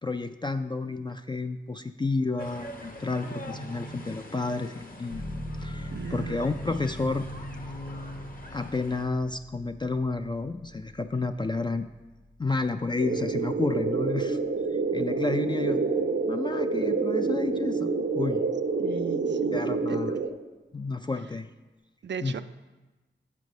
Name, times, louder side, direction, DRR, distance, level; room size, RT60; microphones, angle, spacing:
voice 1, 0.0-7.3 8.5-11.9 12.4-14.4 14.7-15.8 16.3-18.4 19.5-20.2 20.7-21.5 22.2-22.3, left 3 dB, 20° left, 8 dB, 0.3 m, -31 dB
sound 1, 2.4-9.1, equal, 45° left, 1.0 m, -41 dB
sound 2, 5.1-15.6, equal, 90° left, 1.0 m, -43 dB
voice 2, 5.9-6.5 18.8-19.6 19.9-20.2 22.0-22.4, right 7 dB, 60° right, 12 dB, 0.4 m, -37 dB
sound 3, 13.0-20.3, right 4 dB, 75° right, 0.8 m, -27 dB
6.5 x 6.3 x 5.2 m, 1.2 s
cardioid pair, 40°, 20 cm